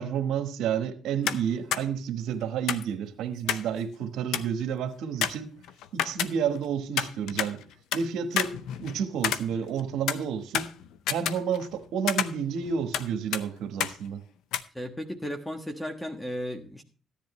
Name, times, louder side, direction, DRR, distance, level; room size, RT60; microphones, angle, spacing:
voice 1, 0.0-5.5 5.9-7.6 7.9-10.7 11.1-14.2, right 7 dB, 85° right, 1.2 m, -30 dB
sound 1, 1.3-1.5 1.7-1.8 2.7-3.7 4.0-4.1 4.3-4.6 5.2-6.6 7.0-8.0 8.4-9.8 10.1-11.8 12.1-13.1 13.3-13.4 13.8-14.0 14.5-14.6, left 10 dB, 85° left, 0.6 m, -30 dB
voice 2, 14.7-16.8, equal, 10° left, 1.3 m, -35 dB
14.5 x 10.5 x 3.1 m
cardioid pair, 90°, 0 cm